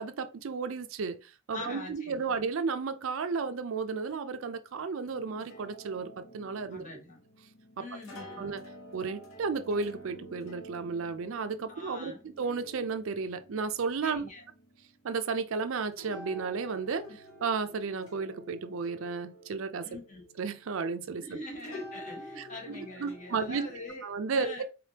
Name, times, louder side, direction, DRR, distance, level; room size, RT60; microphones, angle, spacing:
voice 1, 0.0-6.8 8.4-8.6 8.9-14.3 15.0-17.1 17.4-19.9 20.4-21.4 22.4-23.6 24.0-24.6, right 5 dB, 70° right, 0.4 m, -33 dB
voice 2, 1.5-2.2 6.7-7.2 7.8-8.4 11.7-12.2 14.0-14.4 19.8-20.2 21.2-24.6, left 2 dB, 35° left, 1.1 m, -43 dB
sound 1, 5.0-21.3 21.6-23.9, equal, 80° left, 1.0 m, -49 dB
3.8 x 3.3 x 2.8 m
head